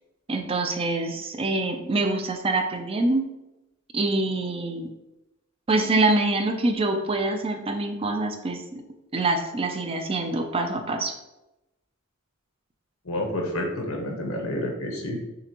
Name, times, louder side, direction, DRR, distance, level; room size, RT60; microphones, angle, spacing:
voice 1, 0.3-3.3 3.9-4.9 5.7-8.8 9.1-11.1, right 2 dB, 25° right, 5 dB, 0.4 m, -25 dB
voice 2, 13.0-15.2, left 1 dB, 80° left, 1 dB, 1.0 m, -29 dB
6.7 x 2.5 x 2.9 m, 0.94 s
head